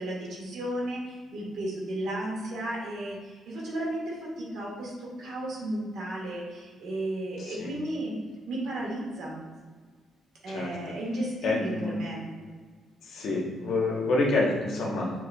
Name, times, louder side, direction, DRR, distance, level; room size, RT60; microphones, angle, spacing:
voice 1, 0.0-8.2 8.5-9.4 10.4-12.3, right 1 dB, 75° right, -3 dB, 1.4 m, -34 dB
voice 2, 7.4-7.7 10.5-10.7 11.4-12.0 13.0-15.2, left 2 dB, 75° left, -2 dB, 1.0 m, -28 dB
6.3 x 2.9 x 2.3 m, 1.5 s
cardioid pair, 90°, 0 cm